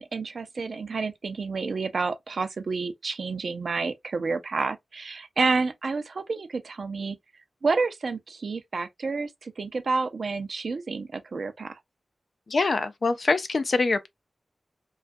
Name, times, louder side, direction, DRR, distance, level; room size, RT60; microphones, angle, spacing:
voice 1, 0.0-7.2 7.6-11.7, right 4 dB, 60° right, 0.4 m, -29 dB
voice 2, 12.5-14.1, left 3 dB, 55° left, 0.4 m, -24 dB
2.3 x 2.2 x 2.5 m
wide cardioid pair, 115°, 0 cm